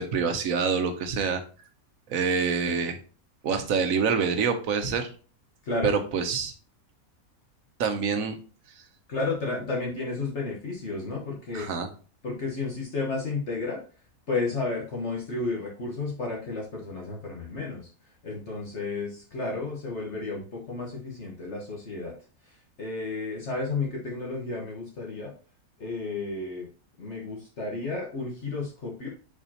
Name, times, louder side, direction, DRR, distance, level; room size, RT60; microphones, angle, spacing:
voice 1, 0.0-1.4 2.1-3.0 3.4-5.1 5.8-6.5 7.8-8.3 11.5-11.9, right 5 dB, 70° right, 7 dB, 1.3 m, -26 dB
voice 2, 5.6-6.0 9.1-11.7 12.2-13.8 14.3-17.8 18.2-22.1 22.8-25.3 25.8-26.7 27.0-29.1, left 3 dB, 50° left, -2 dB, 1.6 m, -32 dB
6.9 x 4.8 x 2.9 m, 0.38 s
omnidirectional pair, 1.5 m